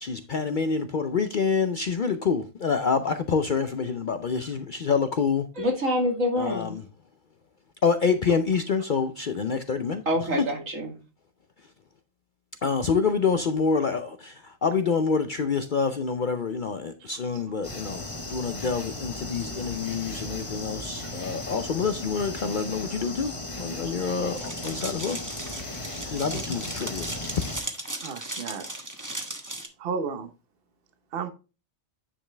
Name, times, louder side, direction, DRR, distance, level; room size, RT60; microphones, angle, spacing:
voice 1, 0.0-5.5 6.4-6.8 7.8-10.0 12.6-18.0 18.3-25.2 26.1-27.1, left 5 dB, 55° left, 0.6 m, -27 dB
voice 2, 5.6-6.8 10.1-10.9, left 1 dB, 75° right, 2.9 m, -26 dB
voice 3, 17.0-17.4 21.0-21.1 23.8-23.9 26.3-26.4 28.0-28.7 29.8-30.3 31.1-31.3, right 5 dB, 50° right, 1.0 m, -34 dB
sound 1, 17.6-27.6, left 2 dB, 25° left, 1.2 m, -36 dB
sound 2, 24.4-29.7, right 1 dB, 15° right, 1.1 m, -36 dB
9.8 x 5.2 x 3.3 m
omnidirectional pair, 1.4 m